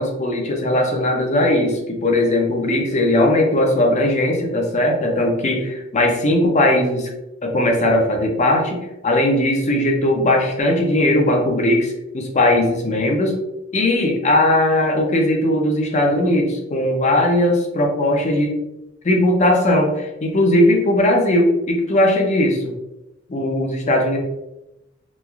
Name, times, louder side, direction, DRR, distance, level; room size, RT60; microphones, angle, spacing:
voice 1, 0.0-7.1 7.4-13.4 13.7-18.5 19.0-22.7 23.3-24.2, left 1 dB, 35° left, 1 dB, 0.5 m, -18 dB
3.0 x 2.4 x 2.3 m, 0.95 s
head